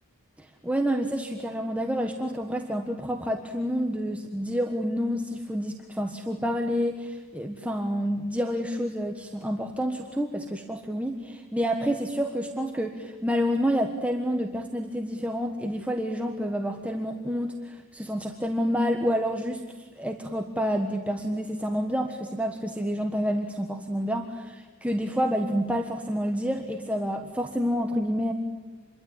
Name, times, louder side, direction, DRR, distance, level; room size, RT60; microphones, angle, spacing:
voice 1, 0.4-28.3, equal, 5° right, 3 dB, 1.4 m, -28 dB
27.5 x 22.5 x 8.9 m, 1.2 s
head